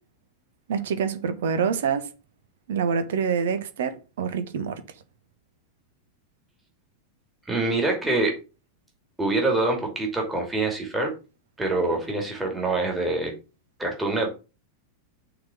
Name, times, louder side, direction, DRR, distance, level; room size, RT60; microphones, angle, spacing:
voice 1, 0.7-2.1 2.7-4.8, right 6 dB, 60° right, 1.1 m, -26 dB
voice 2, 7.5-8.4 9.2-11.1 11.6-13.3 13.8-14.3, right 2 dB, 10° right, 2.6 m, -25 dB
6.4 x 4.1 x 6.4 m
figure-of-eight pair, 90°, 0 cm